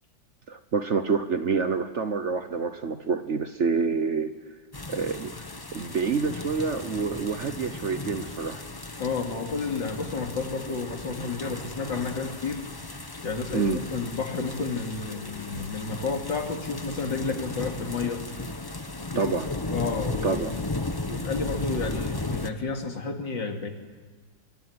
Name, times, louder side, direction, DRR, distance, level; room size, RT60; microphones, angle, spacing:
voice 1, 0.5-4.3 4.9-5.3 5.7-8.6 13.5-13.8 19.2-19.5 20.2-20.6, right 5 dB, 50° right, 10 dB, 1.0 m, -27 dB
sound 1, 4.7-22.5, left 2 dB, 20° left, 0.6 m, -35 dB
voice 2, 9.0-12.6 13.2-18.2 19.1-19.4 19.7-20.6 21.1-23.7, left 4 dB, 80° left, 4 dB, 3.2 m, -31 dB
25.0 x 23.0 x 9.6 m, 1.4 s
omnidirectional pair, 2.0 m